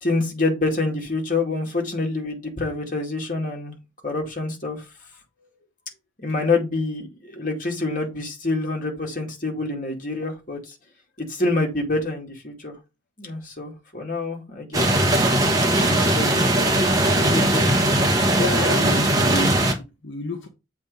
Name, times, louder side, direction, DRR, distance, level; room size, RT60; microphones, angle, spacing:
voice 1, 0.0-3.8 4.0-4.9 6.2-10.7 11.2-12.7 13.2-15.2 15.8-17.7, left 3 dB, 45° left, 2.2 m, -27 dB
sound 1, 14.7-19.7, right 1 dB, 20° right, 1.6 m, -19 dB
voice 2, 18.3-20.5, left 2 dB, 70° left, 1.3 m, -30 dB
7.4 x 3.6 x 5.3 m
head